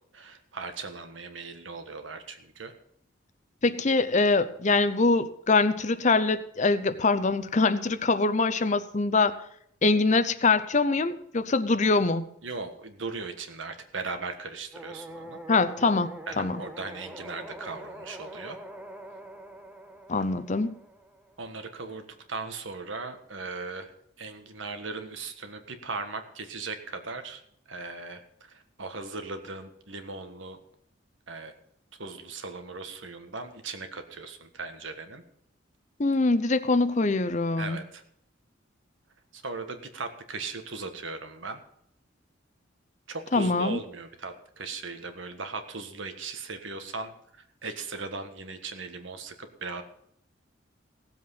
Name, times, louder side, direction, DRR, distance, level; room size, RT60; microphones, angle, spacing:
voice 1, 0.1-2.7 12.4-15.4 16.3-18.6 21.4-23.9 24.2-27.4 27.7-30.6 31.3-31.5 32.0-35.2 37.6-38.0 39.3-41.6 43.1-49.8, right 3 dB, 80° right, 7 dB, 1.5 m, -38 dB
voice 2, 3.6-9.4 9.8-12.3 15.5-16.1 16.4-16.6 20.1-20.8 36.0-37.8 43.3-43.8, left 3 dB, 40° left, 13 dB, 0.7 m, -24 dB
sound 1, 14.7-21.7, right 1 dB, 5° right, 0.8 m, -44 dB
16.5 x 7.7 x 5.6 m, 0.70 s
head